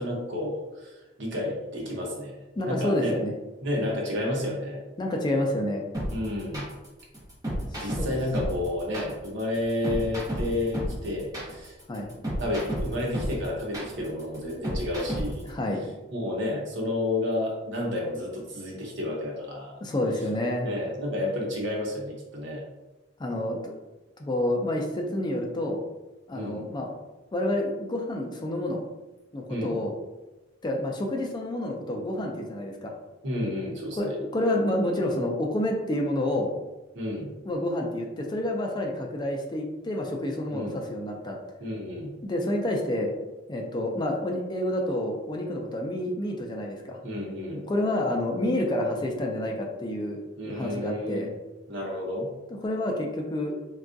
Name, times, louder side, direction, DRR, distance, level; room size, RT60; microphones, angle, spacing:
voice 1, 0.0-2.4 2.6-3.1 3.6-4.8 6.1-6.7 7.7-11.8 12.4-15.4 16.1-19.7 20.6-22.6 26.3-26.6 29.5-29.8 33.2-34.1 36.9-37.3 40.5-40.8 41.6-42.1 47.0-47.6 50.4-51.3 51.7-52.3, left 1 dB, 65° right, -1 dB, 0.8 m, -31 dB
voice 2, 2.6-3.3 5.0-5.8 7.7-8.1 11.9-12.1 15.5-15.9 19.8-20.7 23.2-23.6 24.2-25.8 26.3-26.9 27.3-28.8 29.3-29.9 30.6-32.9 34.0-36.5 37.4-41.4 42.2-43.1 43.5-47.0 47.7-51.3 52.6-53.6, left 1 dB, 25° left, 1 dB, 0.3 m, -29 dB
sound 1, 5.9-15.5, equal, 20° right, 0.8 m, -32 dB
3.5 x 2.3 x 2.5 m, 1.1 s
head